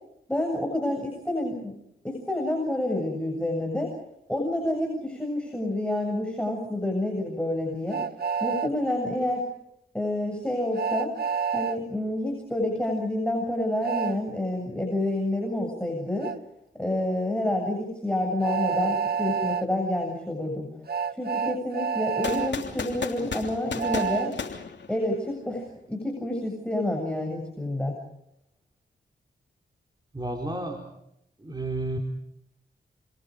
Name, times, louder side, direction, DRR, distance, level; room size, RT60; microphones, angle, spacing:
voice 1, 0.3-1.8 2.0-3.9 4.3-8.0 8.4-9.5 9.9-11.1 11.5-16.3 16.8-20.7 21.1-24.4 24.9-28.0, left 1 dB, 5° left, 1 dB, 7.5 m, -28 dB
Train, 7.9-8.7 10.7-11.8 13.8-14.2 16.2-16.4 18.4-19.6 20.9-22.5 23.8-24.3, right 7 dB, 55° right, 1.6 m, -28 dB
sound 1, 22.2-25.4, left 5 dB, 65° left, 3.2 m, -34 dB
voice 2, 30.1-30.9 31.4-32.0, right 2 dB, 20° right, 2 dB, 4.2 m, -31 dB
29.5 x 27.0 x 5.2 m, 0.78 s
cardioid pair, 60°, 20 cm